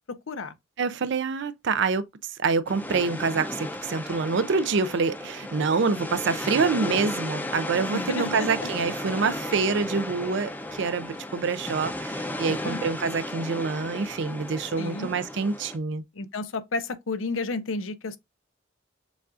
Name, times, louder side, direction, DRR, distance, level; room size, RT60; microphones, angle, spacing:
voice 1, 0.1-0.5 7.9-8.7 12.5-12.8 14.8-15.1 16.1-18.2, left 3 dB, 80° left, 0.7 m, -32 dB
voice 2, 0.8-2.0 2.4-10.5 10.8-16.0, right 4 dB, 60° right, 0.5 m, -26 dB
sound 1, 2.7-15.8, left 1 dB, 10° left, 0.5 m, -34 dB
7.0 x 2.4 x 2.4 m
head